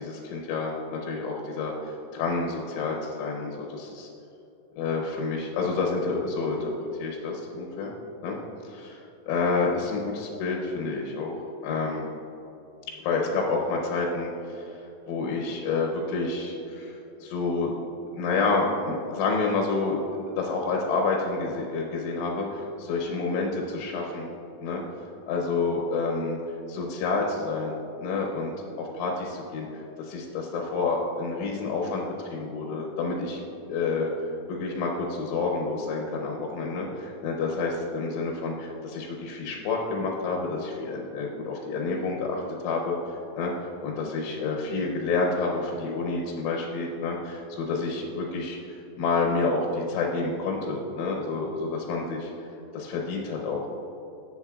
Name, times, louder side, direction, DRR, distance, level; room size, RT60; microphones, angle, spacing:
voice 1, 0.0-4.1 4.8-6.7 7.0-7.9 8.2-8.4 9.3-11.4 11.6-12.1 13.0-14.8 15.1-17.7 18.1-20.0 20.4-24.3 24.6-24.8 25.3-26.4 26.7-33.4 33.7-34.1 34.5-43.0 43.4-43.5 43.8-52.3 52.7-53.7, left 3 dB, 85° left, -1 dB, 3.3 m, -29 dB
14.0 x 8.1 x 2.4 m, 2.9 s
omnidirectional pair, 5.4 m